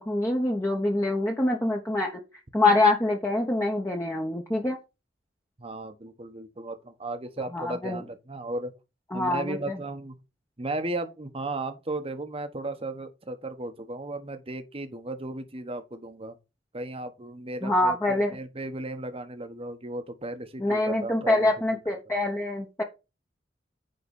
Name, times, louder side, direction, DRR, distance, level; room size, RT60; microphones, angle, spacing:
voice 1, 0.0-2.2 2.5-4.8 7.5-8.0 9.1-9.8 17.6-18.3 20.6-22.8, left 2 dB, 15° left, 1.1 m, -25 dB
voice 2, 5.6-8.7 9.1-10.1 10.6-16.3 16.7-18.0 18.3-21.5 22.1-22.2, right 2 dB, 30° right, 1.1 m, -35 dB
9.6 x 3.9 x 5.4 m
head